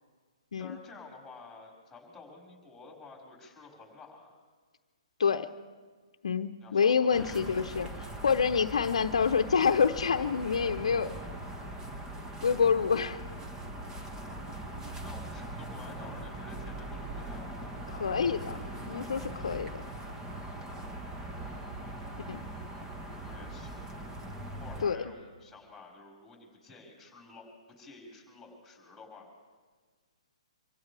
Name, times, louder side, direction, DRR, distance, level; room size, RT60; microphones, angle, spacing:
voice 1, 0.6-4.4 6.6-7.7 14.9-17.5 23.1-23.8 24.6-29.3, left 3 dB, 5° left, -2 dB, 5.2 m, -51 dB
voice 2, 6.2-11.1 12.4-13.2 17.9-18.6 18.9-19.7 22.3-22.5 24.8-25.0, left 6 dB, 75° left, 8 dB, 0.8 m, -27 dB
sound 1, 7.1-24.8, right 1 dB, 15° right, 1.4 m, -41 dB
26.0 x 16.0 x 3.4 m, 1.5 s
hypercardioid pair, 140°, 3 cm